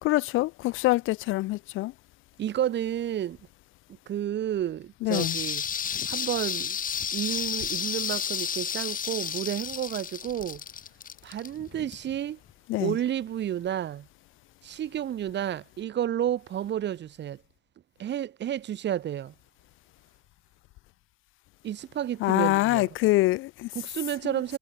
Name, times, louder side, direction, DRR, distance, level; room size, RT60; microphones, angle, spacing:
voice 1, 0.0-1.9 5.0-5.4 12.7-13.0 22.2-23.7 24.2-24.3, left 18 dB, 90° left, 0.5 m, -25 dB
voice 2, 2.4-3.4 4.1-5.6 6.1-6.8 7.1-10.6 11.2-12.4 12.8-14.1 14.6-17.4 18.0-19.3 21.6-22.9 23.7-24.6, right 11 dB, 65° right, 1.3 m, -31 dB
sound 1, 5.1-12.2 12.5-12.6, left 8 dB, 45° left, 1.0 m, -32 dB
cardioid pair, 90°, 20 cm